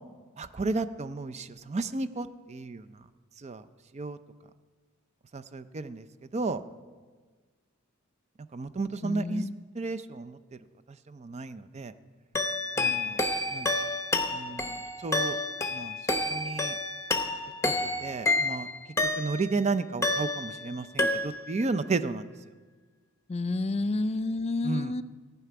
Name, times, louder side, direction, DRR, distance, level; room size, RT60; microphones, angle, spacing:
voice 1, 0.4-3.0 3.4-3.6 3.9-4.2 5.3-6.1 6.3-6.6 8.5-9.4 9.8-10.4 11.1-11.9 12.8-13.2 13.5-13.7 14.3-15.4 15.7-16.0 16.3-16.8 17.6-18.7 19.2-22.3 24.6-24.9, right 3 dB, 30° right, 13 dB, 0.5 m, -33 dB
voice 2, 9.0-9.5 23.3-25.0, left 2 dB, 30° left, 14 dB, 0.3 m, -30 dB
sound 1, 12.3-19.6 20.0-20.7 21.0-21.6, left 2 dB, 15° left, 0.8 m, -29 dB
14.5 x 5.9 x 9.3 m, 1.4 s
head